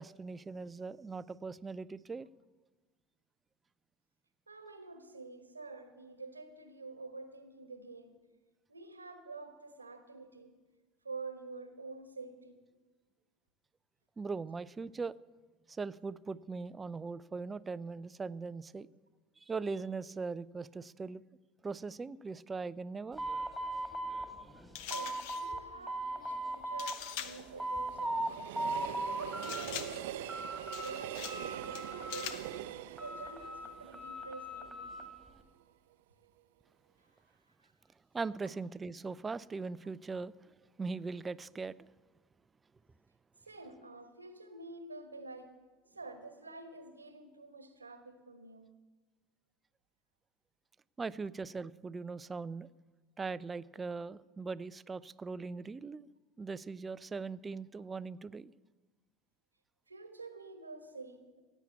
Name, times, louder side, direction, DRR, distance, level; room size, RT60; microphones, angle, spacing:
voice 1, 0.0-2.3 14.2-15.2 15.7-18.9 19.4-21.2 21.6-23.2 38.1-40.3 40.8-41.9 51.0-52.7 53.2-56.1 56.4-58.5, right 4 dB, 20° right, 17 dB, 0.4 m, -40 dB
voice 2, 4.5-8.2 8.7-10.6 11.0-12.7 24.8-28.6 29.2-32.5 33.0-34.8 37.6-37.7 43.4-45.6 45.9-48.7 59.9-61.4, right 3 dB, 85° right, 8 dB, 1.3 m, -48 dB
sound 1, 23.2-25.6 25.9-27.0 27.3-28.3 28.6-29.6 30.0-31.0 31.2-32.5 33.0-35.1, right 1 dB, ahead, 2.6 m, -38 dB
sound 2, 24.7-25.5 26.8-27.5 29.4-30.1 30.7-31.5 31.7-32.5, left 10 dB, 60° left, 0.9 m, -43 dB
Train, 26.2-35.2 35.6-35.7, right 13 dB, 65° right, 0.7 m, -44 dB
16.0 x 8.2 x 8.3 m, 1.3 s
figure-of-eight pair, 70°, 0 cm